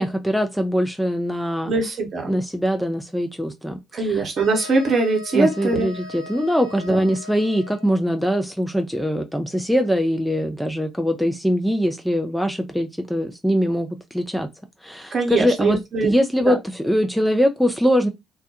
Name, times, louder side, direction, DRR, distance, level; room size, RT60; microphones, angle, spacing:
voice 1, 0.0-1.7 2.3-3.8 5.3-14.5 14.8-18.1, equal, ahead, 0.4 m, -22 dB
voice 2, 1.7-2.4 3.9-5.9 6.8-7.1 15.1-16.5, right 3 dB, 45° right, 0.9 m, -22 dB
sound 1, 4.3-8.0, left 4 dB, 80° right, 0.5 m, -39 dB
2.3 x 2.1 x 2.8 m
hypercardioid pair, 50°, 0 cm